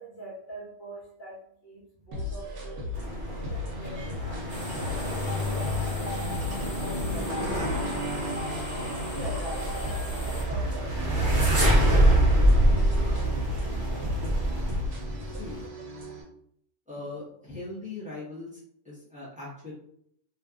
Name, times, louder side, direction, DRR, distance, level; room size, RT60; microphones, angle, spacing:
voice 1, 0.0-6.1 6.6-7.6 8.8-12.4, right 2 dB, 45° left, -5 dB, 1.0 m, -44 dB
sound 1, 2.1-16.2, left 2 dB, 80° right, 1.1 m, -36 dB
sound 2, 2.9-15.7, right 1 dB, 50° right, 0.8 m, -26 dB
sound 3, 4.5-10.4, left 1 dB, 20° left, 0.5 m, -38 dB
voice 2, 16.9-18.6 18.8-19.7, left 2 dB, 5° right, -8 dB, 0.9 m, -40 dB
2.7 x 2.4 x 2.3 m, 0.69 s
omnidirectional pair, 1.3 m